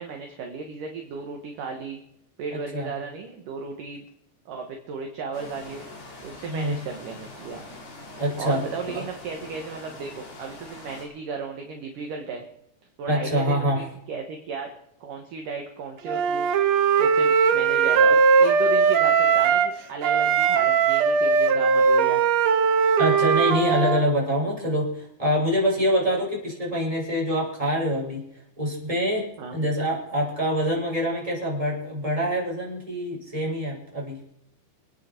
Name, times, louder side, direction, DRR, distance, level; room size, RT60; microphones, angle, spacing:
voice 1, 0.0-2.0 2.4-4.1 4.5-5.9 6.2-7.6 8.4-12.4 13.0-14.7 15.0-16.5 17.0-22.2 29.4-29.6, right 5 dB, 60° right, 3 dB, 2.7 m, -35 dB
voice 2, 2.5-2.9 6.4-6.7 8.2-9.0 13.1-13.8 23.0-28.2 28.6-34.2, equal, 10° right, -4 dB, 5.9 m, -25 dB
sound 1, 5.3-11.1, left 2 dB, 75° left, 6.9 m, -43 dB
Wind instrument woodwind instrument, 16.1-19.7 20.0-24.0, right 6 dB, 85° right, 1.5 m, -19 dB
27.0 x 9.4 x 4.5 m, 0.78 s
omnidirectional pair, 4.7 m